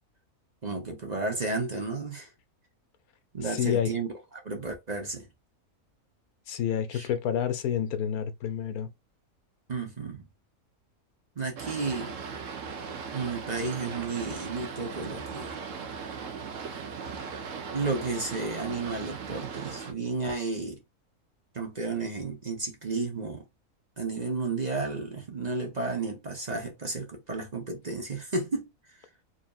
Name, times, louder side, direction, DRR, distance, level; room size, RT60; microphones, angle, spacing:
voice 1, 0.6-2.3 3.3-4.1 4.3-5.3 6.9-7.1 9.7-10.2 11.4-12.2 13.1-15.5 17.7-20.8 21.5-23.4 24.0-28.7, right 3 dB, 35° right, 0.8 m, -32 dB
voice 2, 3.4-3.9 6.5-8.9, left 9 dB, 75° left, 1.2 m, -29 dB
Boat Water vehicle, 11.6-19.9, right 5 dB, 60° right, 1.1 m, -38 dB
4.9 x 3.1 x 2.4 m
omnidirectional pair, 1.6 m